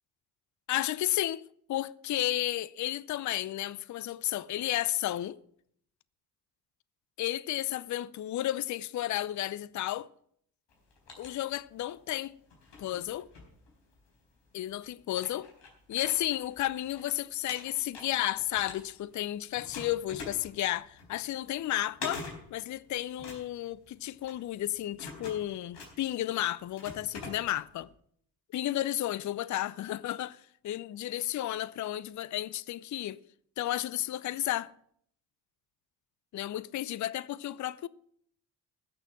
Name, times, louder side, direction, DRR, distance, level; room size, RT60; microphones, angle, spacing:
voice 1, 0.7-1.4 1.7-5.4 7.2-10.1 11.2-12.4 12.8-13.3 14.5-15.5 15.9-22.3 22.5-27.9 28.5-33.2 33.6-34.7 36.3-37.9, left 14 dB, 40° left, 0.6 m, -32 dB
sound 1, 10.7-12.0 12.5-14.2 14.7-14.8 15.1-17.0 17.3-19.2 19.6-27.8, left 3 dB, 60° left, 4.4 m, -45 dB
15.5 x 6.6 x 7.1 m
hypercardioid pair, 45°, 47 cm